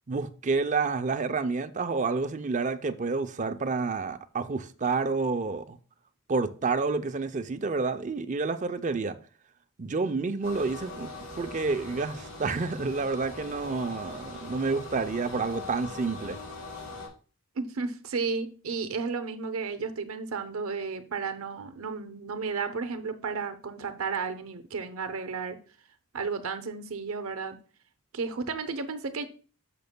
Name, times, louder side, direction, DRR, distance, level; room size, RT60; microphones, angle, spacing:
voice 1, 0.1-5.8 6.3-9.2 9.8-16.4, right 4 dB, 35° right, 0.5 m, -29 dB
sound 1, 10.4-17.1, left 2 dB, 70° left, 3.7 m, -41 dB
voice 2, 17.6-25.6 26.1-27.6 28.1-29.3, right 5 dB, 75° right, 0.7 m, -33 dB
10.5 x 6.7 x 2.2 m
head